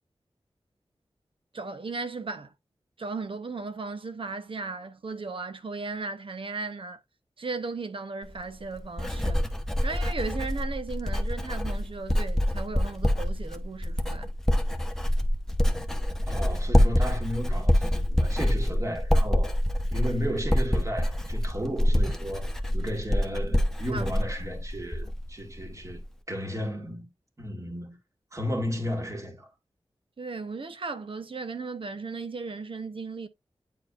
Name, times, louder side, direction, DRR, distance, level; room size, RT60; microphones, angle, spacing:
voice 1, 1.5-2.5 3.0-7.0 7.4-9.4 9.8-14.3 23.9-24.1 30.2-33.3, right 4 dB, 60° right, 0.9 m, -36 dB
Writing, 8.2-25.3 25.6-26.0, left 1 dB, 5° left, 1.0 m, -26 dB
voice 2, 16.3-19.6 19.9-26.0 26.3-27.1 27.4-28.0 28.3-29.5, equal, 30° right, 2.1 m, -34 dB
9.3 x 4.6 x 2.5 m
wide cardioid pair, 95°, 10 cm